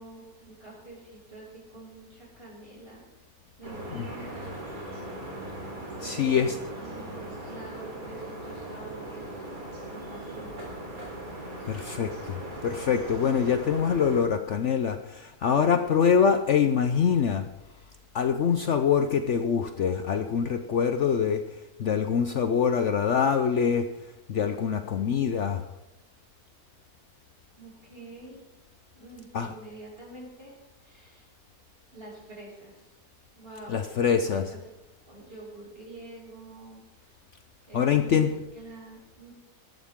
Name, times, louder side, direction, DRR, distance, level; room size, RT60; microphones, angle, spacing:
voice 1, 0.0-3.0 3.6-4.6 5.9-9.3 9.9-10.6 27.6-28.4 28.9-31.3 31.9-32.9 33.4-33.9 34.2-34.6 35.1-37.2 37.7-39.3, right 2 dB, 40° right, -4 dB, 6.8 m, -46 dB
sound 1, 3.6-14.2, right 1 dB, 65° right, 4.0 m, -39 dB
voice 2, 6.0-6.6 11.7-17.4 18.1-21.4 21.8-23.9 24.3-25.6 29.3-29.5 33.7-34.4 37.7-38.3, left 7 dB, 60° left, 8 dB, 0.9 m, -24 dB
19.0 x 13.5 x 3.7 m, 0.96 s
omnidirectional pair, 1.6 m